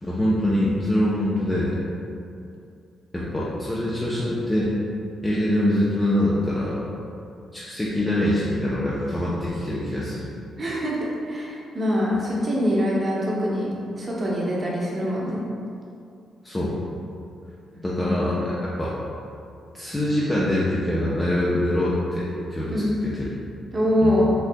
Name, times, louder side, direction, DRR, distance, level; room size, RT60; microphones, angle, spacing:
voice 1, 0.0-1.8 3.1-4.7 5.2-6.8 7.5-10.3 16.4-16.7 17.8-18.9 19.7-22.7 23.0-23.3 24.0-24.2, left 1 dB, 15° left, -7 dB, 0.6 m, -24 dB
voice 2, 10.6-15.4 17.7-18.2 22.7-22.9 23.7-24.3, equal, 40° right, -5 dB, 0.9 m, -24 dB
4.4 x 2.5 x 2.2 m, 2.5 s
supercardioid pair, 50°, 0 cm